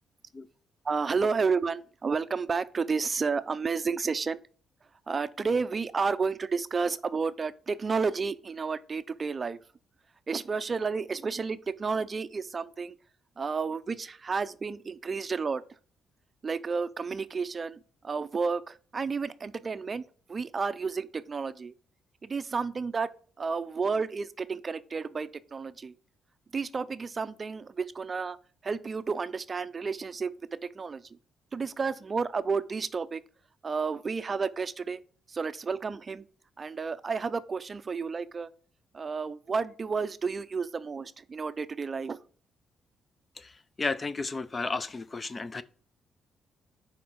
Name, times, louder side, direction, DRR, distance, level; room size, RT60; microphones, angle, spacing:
voice 1, 0.8-4.4 5.1-9.6 10.3-12.9 13.4-15.6 16.4-20.0 20.3-21.7 22.2-23.1 23.4-25.9 26.5-28.4 28.6-30.3 30.7-31.2 31.5-33.2 33.6-35.0 35.3-36.2 36.6-38.5 38.9-42.2, right 5 dB, 35° right, 0.4 m, -31 dB
voice 2, 43.8-45.6, left 3 dB, 30° left, 0.5 m, -33 dB
6.2 x 4.4 x 4.6 m
cardioid pair, 90°, 0 cm